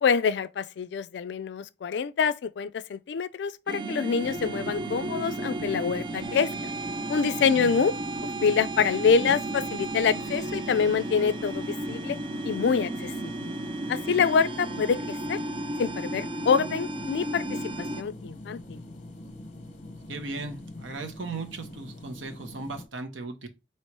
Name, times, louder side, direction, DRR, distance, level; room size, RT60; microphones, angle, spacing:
voice 1, 0.0-6.5 7.1-7.9 8.4-12.2 12.4-13.1 13.9-15.4 15.8-17.4 17.8-18.8, left 6 dB, 65° left, 0.3 m, -26 dB
sound 1, 3.7-18.0, right 2 dB, 25° right, 0.3 m, -34 dB
sound 2, 4.2-22.9, left 1 dB, 40° left, 0.8 m, -44 dB
voice 2, 20.1-23.5, right 3 dB, 85° right, 0.9 m, -37 dB
3.0 x 2.9 x 4.5 m
head